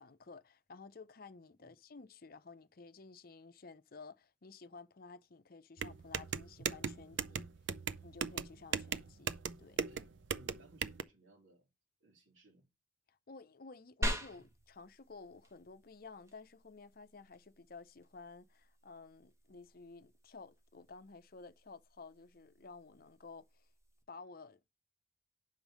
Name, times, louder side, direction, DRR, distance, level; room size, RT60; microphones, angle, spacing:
voice 1, 0.0-7.2 8.0-9.8 13.1-23.7 24.1-24.7, left 4 dB, 50° left, 0.6 m, -53 dB
sound 1, 5.8-11.0, right 7 dB, 70° right, 0.5 m, -38 dB
voice 2, 7.0-7.5 9.7-11.7 12.0-12.7, right 2 dB, 85° right, 2.7 m, -63 dB
sound 2, 14.0-24.0, equal, 15° right, 1.4 m, -46 dB
6.4 x 5.3 x 6.2 m
head